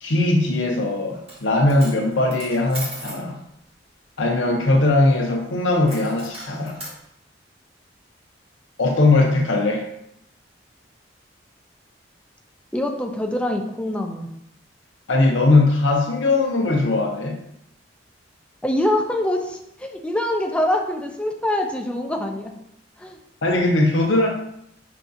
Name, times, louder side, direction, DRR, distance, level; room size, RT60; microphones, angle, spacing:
voice 1, 0.0-3.4 4.2-6.8 8.8-9.9 15.1-17.4 23.4-24.3, left 2 dB, 75° left, 1 dB, 0.7 m, -19 dB
Coin (dropping), 1.1-1.4 1.7-3.2 5.9-7.0, right 1 dB, 30° right, 1.2 m, -37 dB
voice 2, 12.7-14.3 18.6-22.5 23.0-23.2, left 1 dB, 5° left, 2 dB, 0.4 m, -24 dB
5.6 x 2.4 x 2.6 m, 0.76 s
head